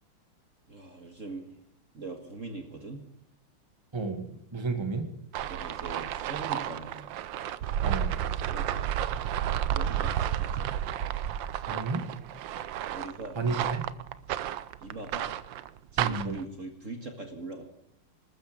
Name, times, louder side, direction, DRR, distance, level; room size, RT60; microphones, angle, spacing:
voice 1, 0.7-1.5 1.9-3.1 5.4-7.1 8.4-8.7 9.7-10.7 12.9-13.7 14.8-15.3 15.9-17.6, right 3 dB, 40° right, 4 dB, 2.0 m, -41 dB
voice 2, 3.9-4.3 4.5-5.1 7.8-8.2 11.7-12.1 13.4-13.9 16.0-16.4, right 4 dB, 15° right, 6 dB, 1.8 m, -31 dB
sound 1, 5.3-16.4, right 10 dB, 70° right, 1.3 m, -32 dB
20.5 x 13.5 x 5.2 m, 0.77 s
omnidirectional pair, 2.4 m